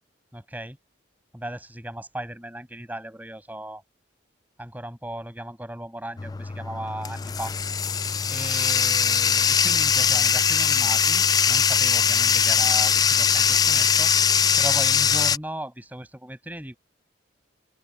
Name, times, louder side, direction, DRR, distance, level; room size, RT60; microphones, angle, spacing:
voice 1, 0.3-0.8 1.3-3.8 4.6-7.5 8.3-14.1 14.6-16.8, right 1 dB, 10° right, 7.0 m, -36 dB
Bathtub (filling or washing), 6.2-15.4, left 7 dB, 20° left, 0.3 m, -21 dB
open air
head